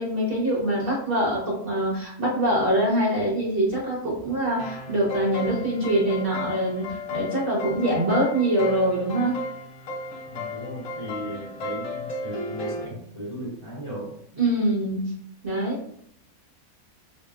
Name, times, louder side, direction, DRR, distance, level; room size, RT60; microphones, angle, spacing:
voice 1, 0.0-9.4 14.4-15.2 15.4-15.8, right 1 dB, 40° right, -5 dB, 1.0 m, -24 dB
sound 1, 4.5-12.9, left 1 dB, 70° left, 1.0 m, -35 dB
voice 2, 10.2-14.2, equal, 25° left, -7 dB, 1.1 m, -36 dB
3.4 x 2.9 x 2.4 m, 0.67 s
omnidirectional pair, 1.6 m